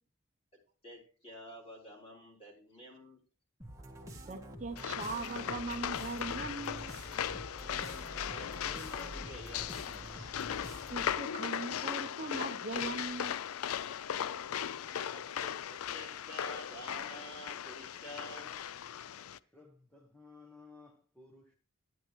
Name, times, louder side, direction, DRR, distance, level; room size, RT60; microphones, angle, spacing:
voice 1, 0.8-3.2 7.6-10.0 14.1-18.6, equal, 30° left, 3.5 m, -50 dB
sound 1, 3.6-11.3, right 1 dB, 15° right, 1.7 m, -47 dB
voice 2, 4.3-7.2 10.2-10.3 10.9-13.4, right 3 dB, 35° right, 0.8 m, -40 dB
sound 2, 4.8-19.4, left 9 dB, 85° left, 0.4 m, -38 dB
voice 3, 19.5-21.5, left 3 dB, 5° left, 1.1 m, -56 dB
11.5 x 10.0 x 3.1 m
head